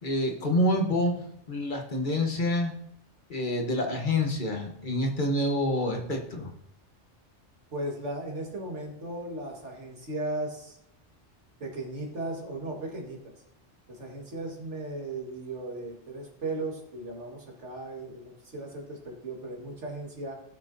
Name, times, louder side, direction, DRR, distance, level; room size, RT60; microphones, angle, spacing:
voice 1, 0.0-2.7 3.3-6.5, left 1 dB, 45° left, 2 dB, 1.2 m, -27 dB
voice 2, 7.7-10.8 11.6-13.3 13.9-20.4, right 2 dB, 85° right, 0 dB, 2.1 m, -36 dB
16.5 x 5.8 x 2.7 m, 0.74 s
omnidirectional pair, 1.2 m